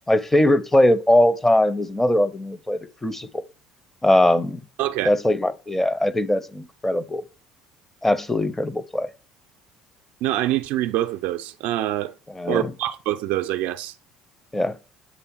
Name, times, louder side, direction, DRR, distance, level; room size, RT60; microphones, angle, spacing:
voice 1, 0.1-3.4 4.0-4.6 5.1-7.2 8.0-9.1 12.3-12.7 14.5-14.8, left 1 dB, 10° left, 0.6 m, -20 dB
voice 2, 4.8-5.1 10.2-12.1 12.5-13.9, right 13 dB, 65° right, 0.5 m, -25 dB
8.1 x 3.4 x 4.6 m
hypercardioid pair, 60°, 3 cm